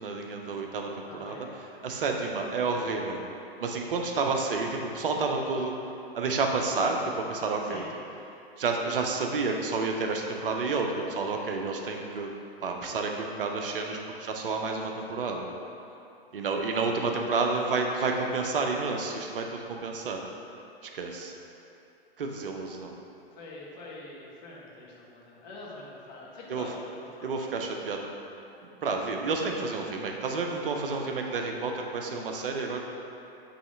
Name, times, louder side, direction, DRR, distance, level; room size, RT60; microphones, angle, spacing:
voice 1, 0.0-3.2 3.6-5.7 6.1-7.8 8.6-12.3 12.6-15.5 16.3-20.2 20.9-21.3 22.2-22.9 26.5-26.7 27.2-28.0 28.8-32.8, right 4 dB, 60° right, 2 dB, 0.7 m, -30 dB
voice 2, 1.1-1.6 1.9-2.0 7.7-7.9 17.9-18.1 23.4-27.4, left 2 dB, 45° left, -4 dB, 1.4 m, -45 dB
5.4 x 3.2 x 5.4 m, 2.6 s
figure-of-eight pair, 110°, 31 cm